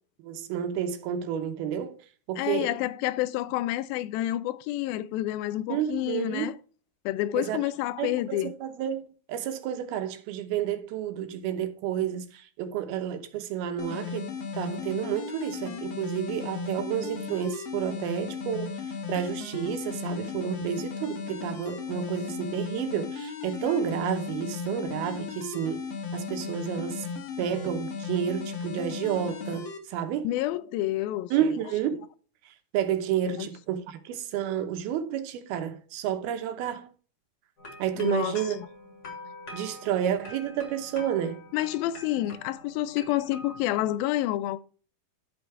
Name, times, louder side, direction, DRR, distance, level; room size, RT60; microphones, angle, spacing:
voice 1, 0.2-2.0 2.3-2.7 5.7-6.5 7.3-7.6 8.0-9.0 9.3-18.8 19.1-25.9 26.1-27.1 27.4-30.3 31.3-32.1 32.7-36.9 37.8-38.6 39.5-41.4, right 9 dB, 80° right, 2.9 m, -30 dB
voice 2, 2.4-6.6 7.1-8.5 30.2-31.3 33.3-33.5 38.0-38.7 41.5-44.6, left 14 dB, 80° left, 2.4 m, -29 dB
sound 1, 13.8-29.8, left 5 dB, 55° left, 2.0 m, -36 dB
sound 2, 37.6-43.6, left 1 dB, 35° left, 3.9 m, -45 dB
11.5 x 5.1 x 4.7 m
omnidirectional pair, 4.3 m